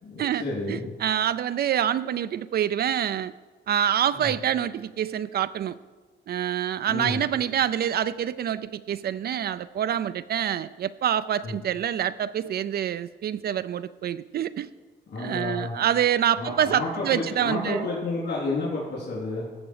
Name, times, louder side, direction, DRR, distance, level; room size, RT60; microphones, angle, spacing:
voice 1, 0.0-0.9 4.1-4.3 6.9-7.2 11.4-11.5 15.1-15.8 16.4-19.5, left 2 dB, 60° left, -7 dB, 3.9 m, -31 dB
voice 2, 0.7-3.3 3.7-5.8 6.3-14.7 15.2-17.9, right 10 dB, 50° right, 14 dB, 0.4 m, -26 dB
16.0 x 6.1 x 4.9 m, 1.4 s
cardioid pair, 90°, 20 cm